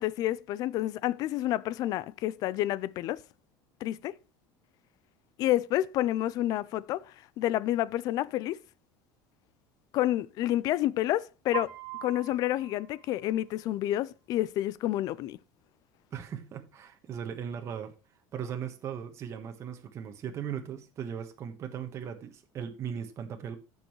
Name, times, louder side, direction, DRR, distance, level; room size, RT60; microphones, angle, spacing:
voice 1, 0.0-3.2 3.8-4.1 5.4-7.1 7.4-8.6 9.9-11.7 12.0-15.4, left 14 dB, 50° left, 0.4 m, -29 dB
Piano, 11.5-13.6, right 16 dB, 55° right, 1.6 m, -41 dB
voice 2, 16.1-17.9 18.3-23.6, right 8 dB, 35° right, 1.3 m, -38 dB
14.5 x 5.5 x 3.1 m
cardioid pair, 145°, 8 cm